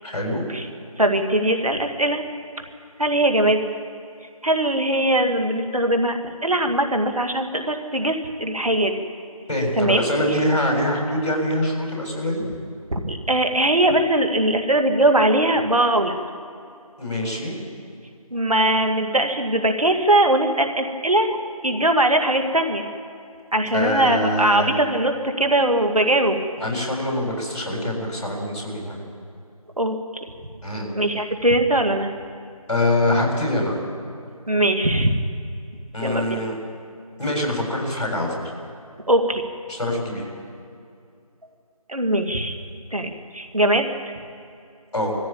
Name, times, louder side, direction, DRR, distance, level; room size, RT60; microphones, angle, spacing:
voice 1, 0.0-0.5 9.5-12.4 17.0-17.5 23.7-24.7 26.6-29.1 30.6-30.9 32.7-33.8 35.9-36.6 37.2-38.5 39.7-40.3 44.9-45.2, left 1 dB, 50° left, -1 dB, 7.4 m, -24 dB
voice 2, 1.0-2.2 3.0-3.6 4.4-8.9 9.8-10.0 10.3-10.4 12.9-16.1 18.3-21.4 21.6-22.9 23.5-26.4 29.8-30.2 30.9-32.1 34.5-35.1 36.0-36.4 39.1-39.4 41.9-42.6 42.9-43.9, right 1 dB, 65° right, 5 dB, 2.3 m, -20 dB
22.5 x 15.0 x 8.8 m, 2.5 s
figure-of-eight pair, 165°, 19 cm